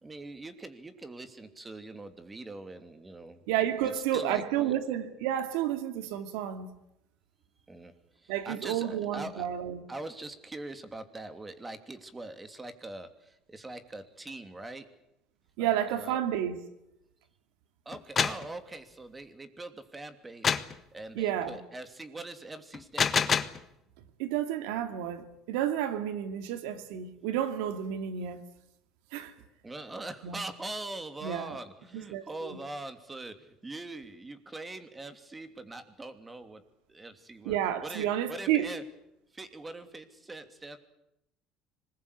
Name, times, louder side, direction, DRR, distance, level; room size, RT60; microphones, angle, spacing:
voice 1, 0.0-3.4 3.8-4.8 7.7-9.5 9.9-14.9 15.6-16.2 17.8-23.4 29.6-36.6 36.9-37.6 37.8-38.8 39.3-40.8, right 2 dB, 15° right, 3.0 m, -42 dB
voice 2, 3.5-6.7 8.3-9.8 15.6-16.6 21.2-21.6 24.2-28.4 29.1-29.3 30.2-30.4 31.2-31.6 31.9-32.6 37.4-38.7, right 10 dB, 90° right, 2.6 m, -31 dB
sound 1, 17.9-18.5 20.4-20.8 22.7-23.6, left 6 dB, 35° left, 1.5 m, -27 dB
26.0 x 21.0 x 8.6 m
supercardioid pair, 105°, 0 cm